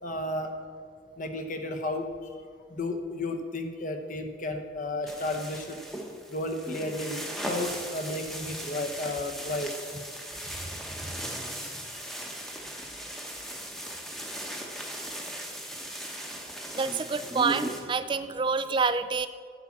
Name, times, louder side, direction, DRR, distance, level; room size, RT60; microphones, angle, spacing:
voice 1, 0.0-0.5 1.2-2.1 2.7-5.8 6.3-7.2 7.5-9.7 14.9-15.1 15.6-16.0, left 2 dB, 40° left, 5 dB, 0.9 m, -33 dB
sound 1, 5.1-17.8, right 1 dB, ahead, 0.9 m, -38 dB
voice 2, 16.7-19.3, right 4 dB, 25° right, 13 dB, 0.3 m, -27 dB
8.1 x 7.3 x 5.9 m, 2.1 s
head